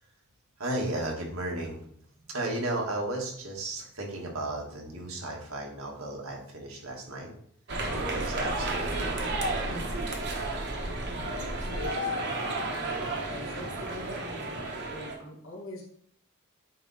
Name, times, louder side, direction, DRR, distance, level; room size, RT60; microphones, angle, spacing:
voice 1, 0.6-1.9 2.2-7.3 7.9-9.8, right 1 dB, 85° right, 0 dB, 1.6 m, -34 dB
sound 1, 7.7-15.2, right 2 dB, 55° right, 1.1 m, -32 dB
voice 2, 11.1-15.8, left 1 dB, 70° left, -3 dB, 1.8 m, -44 dB
8.6 x 3.0 x 4.1 m, 0.66 s
head